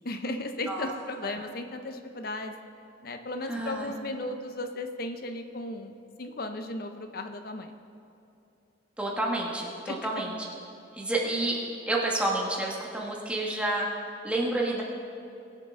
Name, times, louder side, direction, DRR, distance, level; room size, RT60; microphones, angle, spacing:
voice 1, 0.0-2.6 3.0-7.7 9.9-10.0, left 2 dB, 50° left, 7 dB, 0.7 m, -35 dB
voice 2, 3.5-3.9 9.0-10.3 10.9-11.6 11.9-13.9 14.2-14.8, right 2 dB, 5° right, -3 dB, 1.5 m, -29 dB
21.0 x 7.5 x 3.8 m, 2.8 s
head